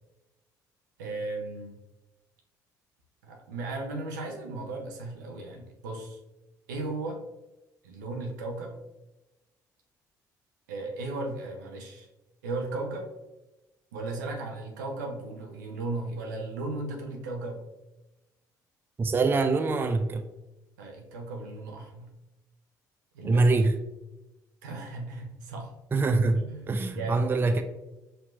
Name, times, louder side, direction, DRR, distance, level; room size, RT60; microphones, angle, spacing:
voice 1, 1.0-1.8 3.2-6.2 6.7-7.2 7.8-8.7 10.7-12.1 12.4-13.1 13.9-17.6 20.8-22.1 23.1-23.6 24.6-25.7 26.3-27.3, right 2 dB, 80° right, 2 dB, 0.7 m, -36 dB
voice 2, 19.0-20.3 23.2-23.8 25.9-27.6, right 3 dB, 20° right, 8 dB, 0.4 m, -24 dB
5.5 x 2.8 x 2.4 m, 1.0 s
hypercardioid pair, 50°, 10 cm